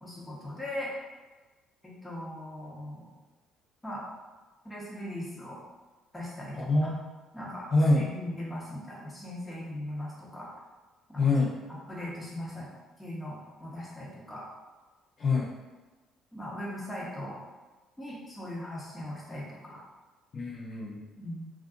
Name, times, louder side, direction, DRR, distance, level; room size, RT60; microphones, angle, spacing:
voice 1, 0.0-0.9 1.8-3.1 3.8-4.0 4.6-5.6 6.1-6.9 7.3-7.7 8.0-10.5 11.1-11.4 11.9-12.7 13.0-14.5 16.3-17.4 18.0-19.9 21.2-21.5, left 1 dB, 10° left, -5 dB, 0.9 m, -39 dB
voice 2, 6.5-7.0 7.7-8.1 11.2-11.5 15.2-15.5 20.3-21.0, left 2 dB, 50° left, -6 dB, 0.6 m, -25 dB
2.5 x 2.4 x 2.5 m, 1.2 s
supercardioid pair, 75°, 0 cm